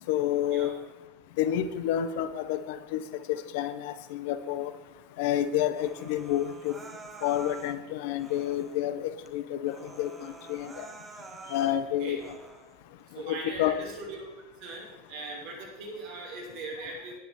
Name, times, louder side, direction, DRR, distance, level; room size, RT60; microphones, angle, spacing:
voice 1, 0.1-0.7 1.4-4.7 5.2-6.8 7.2-10.9 11.5-12.4 13.1-13.7, left 11 dB, 60° left, 12 dB, 1.2 m, -29 dB
Human voice, 5.7-7.8 8.2-8.8 9.3-9.4 9.6-11.8 12.2-12.8, right 4 dB, 20° right, 2.0 m, -47 dB
voice 2, 13.1-14.2 14.6-17.2, right 3 dB, 55° right, 0 dB, 6.1 m, -40 dB
17.5 x 11.5 x 4.5 m, 1.1 s
hypercardioid pair, 85°, 0 cm